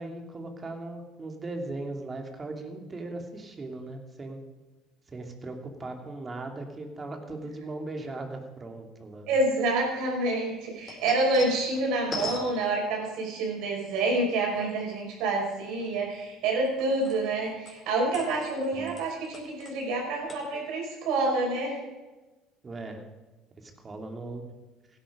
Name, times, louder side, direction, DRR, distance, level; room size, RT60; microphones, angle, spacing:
voice 1, 0.0-4.4 5.1-9.3 18.7-18.9 22.6-23.0 23.6-24.5, right 2 dB, 30° right, 4 dB, 2.8 m, -38 dB
voice 2, 9.3-21.8, right 2 dB, 70° right, 0 dB, 5.6 m, -28 dB
sound 1, 10.3-13.3 13.9-15.0 15.4-17.4 17.7-20.0 20.3-20.4, left 3 dB, 35° left, 4.7 m, -41 dB
16.5 x 11.0 x 5.1 m, 1.1 s
hypercardioid pair, 70°, 0 cm